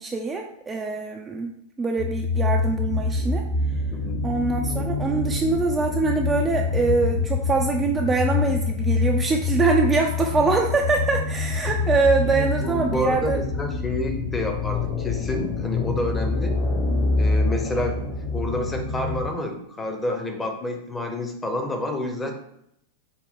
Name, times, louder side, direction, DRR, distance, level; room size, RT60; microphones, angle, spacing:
voice 1, 0.0-1.5 1.8-3.4 4.2-13.4, right 4 dB, 15° right, 1 dB, 0.3 m, -24 dB
sound 1, 2.0-19.3, left 3 dB, 50° left, 1.2 m, -26 dB
voice 2, 3.9-4.3 12.4-16.6 17.2-22.3, left 1 dB, 15° left, 4 dB, 0.7 m, -29 dB
4.1 x 2.2 x 3.5 m, 0.76 s
figure-of-eight pair, 90°, 0 cm